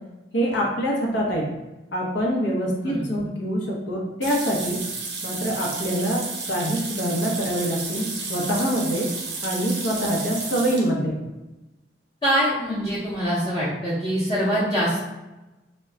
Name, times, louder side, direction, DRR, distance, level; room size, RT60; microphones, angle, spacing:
voice 1, 0.3-1.5 1.9-4.8 5.2-9.1 9.4-11.2, equal, 80° left, -2 dB, 0.7 m, -25 dB
voice 2, 2.8-3.3 12.2-15.0, equal, 25° left, -11 dB, 0.6 m, -24 dB
sound 1, 4.2-10.9, right 4 dB, 70° right, 0.5 m, -32 dB
2.2 x 2.1 x 3.6 m, 1.0 s
head